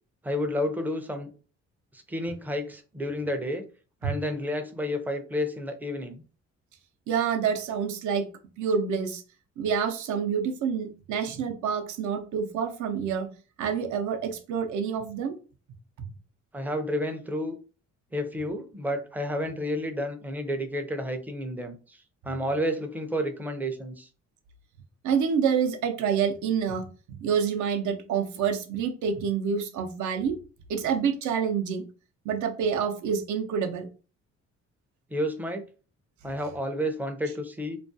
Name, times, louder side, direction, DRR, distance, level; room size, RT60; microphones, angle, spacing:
voice 1, 0.2-1.3 1.9-3.6 4.0-6.2 16.5-17.6 18.1-22.0 22.2-24.1 35.1-35.7 36.2-37.8, equal, 5° right, 6 dB, 0.4 m, -30 dB
voice 2, 7.1-8.3 8.6-9.2 9.6-13.3 13.6-15.3 25.0-30.4 30.7-31.9 32.2-33.9, right 7 dB, 75° right, 5 dB, 0.6 m, -27 dB
2.3 x 2.2 x 2.6 m, 0.36 s
cardioid pair, 90°, 30 cm